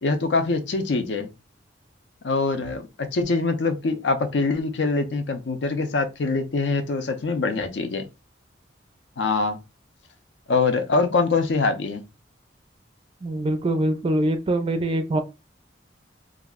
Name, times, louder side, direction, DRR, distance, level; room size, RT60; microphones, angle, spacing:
voice 1, 0.0-1.3 2.2-2.8 3.1-8.0 9.2-9.6 10.5-12.0, left 3 dB, 70° left, 0.5 m, -24 dB
voice 2, 13.2-15.2, right 1 dB, 30° right, 0.4 m, -23 dB
2.4 x 2.0 x 3.5 m
head